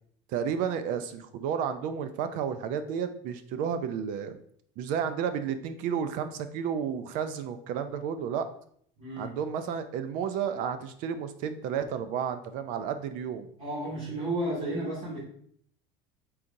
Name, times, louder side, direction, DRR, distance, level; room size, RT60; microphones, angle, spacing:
voice 1, 0.3-4.4 4.8-8.5 9.2-13.5, right 7 dB, 65° right, 10 dB, 0.5 m, -32 dB
voice 2, 9.0-9.3 13.6-15.2, right 1 dB, 45° right, -9 dB, 1.8 m, -32 dB
4.2 x 3.8 x 2.6 m, 0.63 s
supercardioid pair, 115°, 15 cm